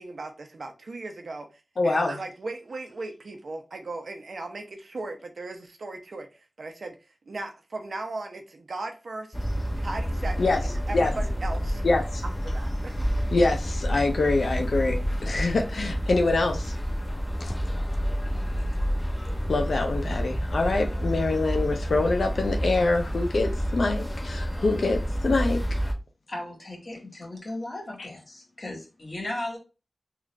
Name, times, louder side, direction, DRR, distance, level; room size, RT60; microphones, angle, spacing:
voice 1, 0.0-1.5 1.8-6.3 6.6-7.0 7.3-9.3 9.8-11.8 12.4-13.1, right 2 dB, 80° right, 0.7 m, -37 dB
voice 2, 1.8-2.2 10.4-10.6 10.9-11.1 11.8-12.2 13.3-16.8 17.4-17.5 19.5-25.8, left 3 dB, 85° left, 0.5 m, -25 dB
sound 1, 9.3-25.9, equal, 20° left, 0.9 m, -29 dB
voice 3, 26.3-29.6, left 1 dB, 55° left, 1.7 m, -36 dB
3.8 x 2.5 x 3.2 m
cardioid pair, 45°, 0 cm